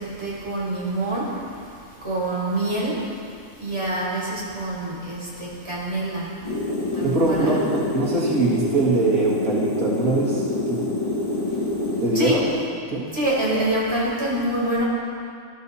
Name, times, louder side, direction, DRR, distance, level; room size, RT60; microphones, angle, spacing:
voice 1, 0.0-7.6 11.5-11.6 12.0-12.3 13.1-14.8, right 1 dB, 20° right, -7 dB, 4.6 m, -27 dB
sound 1, 6.4-12.1, left 2 dB, 25° left, 4.5 m, -26 dB
voice 2, 7.0-10.8 12.0-12.4 12.9-13.1, right 3 dB, 85° right, -5 dB, 2.5 m, -23 dB
19.5 x 12.5 x 4.2 m, 2.4 s
omnidirectional pair, 1.4 m